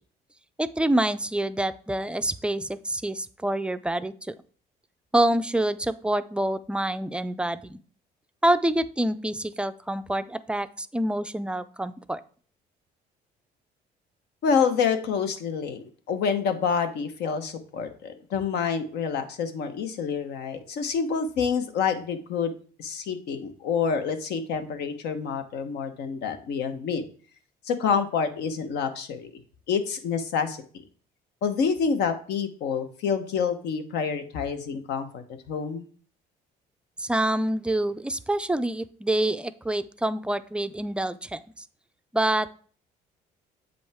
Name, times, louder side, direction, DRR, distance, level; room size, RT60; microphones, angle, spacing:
voice 1, 0.6-4.3 5.1-7.8 8.4-12.2 37.0-41.4 42.1-42.5, right 1 dB, 5° right, 12 dB, 0.4 m, -26 dB
voice 2, 14.4-22.5 22.8-27.0 27.6-29.3 29.7-30.8 31.4-35.9, left 6 dB, 75° left, 8 dB, 1.1 m, -27 dB
7.8 x 5.2 x 3.5 m, 0.43 s
cardioid pair, 110°, 17 cm